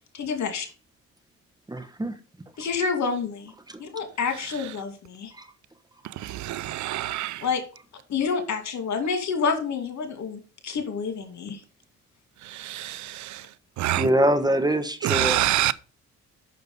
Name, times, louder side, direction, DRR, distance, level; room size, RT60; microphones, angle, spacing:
voice 1, 0.1-0.7 2.6-3.5 3.8-5.3 7.4-7.6 8.1-11.6, left 5 dB, 65° left, 2.4 m, -28 dB
voice 2, 1.7-2.1 3.7-3.8 5.4-5.5 13.9-15.4, right 1 dB, 15° right, 1.2 m, -24 dB
voice 3, 6.0-7.4 12.4-13.5 13.8-14.1 15.0-15.7, right 14 dB, 70° right, 0.5 m, -27 dB
6.7 x 6.5 x 5.4 m
cardioid pair, 90°, 30 cm